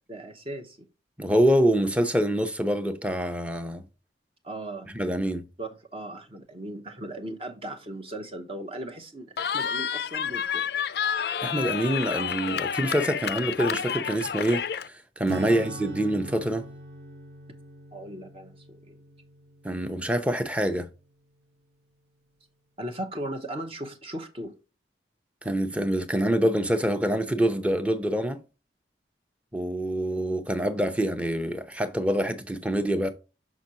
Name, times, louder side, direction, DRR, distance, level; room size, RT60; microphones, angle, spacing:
voice 1, 0.1-0.9 4.4-4.9 5.6-10.7 15.5-15.7 17.9-19.0 22.8-24.5, right 1 dB, 30° right, 0.8 m, -37 dB
voice 2, 1.2-3.8 4.9-5.5 11.4-16.7 19.6-20.9 25.4-28.4 29.5-33.1, right 1 dB, 5° right, 0.7 m, -26 dB
Cheering, 9.4-14.9, left 8 dB, 60° left, 0.4 m, -29 dB
Acoustic guitar / Strum, 15.2-21.2, right 2 dB, 60° right, 1.0 m, -42 dB
6.0 x 6.0 x 2.8 m
head